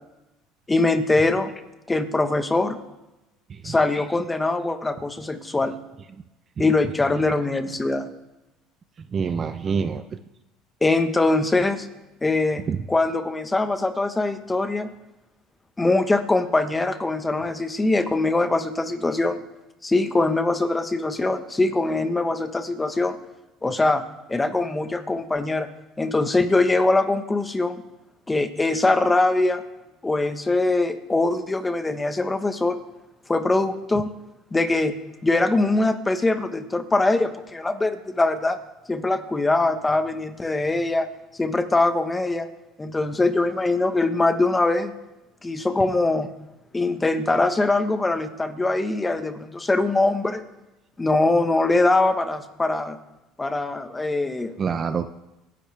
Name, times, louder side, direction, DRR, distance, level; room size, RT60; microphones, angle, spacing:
voice 1, 0.7-1.5 1.9-2.8 3.6-5.8 6.6-8.1 10.8-11.9 12.2-14.9 15.8-19.4 19.8-23.2 23.6-24.0 24.3-25.7 26.0-27.8 28.3-29.6 30.0-32.8 33.3-34.1 34.5-34.9 35.2-38.6 38.9-41.1 41.4-42.5 42.8-44.9 45.4-46.3 46.7-50.4 51.0-53.0 53.4-54.5, left 2 dB, 15° left, 8 dB, 1.2 m, -22 dB
voice 2, 9.1-10.0 12.7-12.8 54.6-55.1, right 6 dB, 30° right, 10 dB, 0.6 m, -26 dB
26.5 x 10.5 x 3.4 m, 0.99 s
cardioid pair, 125°, 0 cm